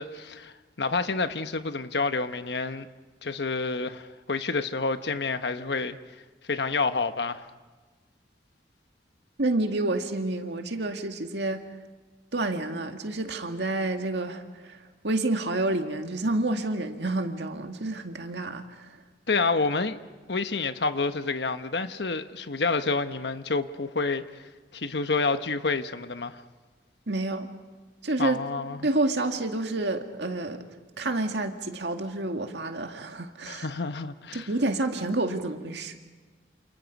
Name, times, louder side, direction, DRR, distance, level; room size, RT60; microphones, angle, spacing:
voice 1, 0.0-2.9 3.2-6.0 6.4-7.5 19.3-20.0 20.3-26.4 28.2-28.9 33.4-34.5, left 4 dB, 75° left, 1.1 m, -29 dB
voice 2, 9.4-11.6 12.3-18.9 27.1-27.5 28.0-28.4 28.8-30.7 31.0-33.7 34.3-36.0, right 2 dB, 80° right, 2.1 m, -29 dB
29.0 x 28.0 x 5.4 m
head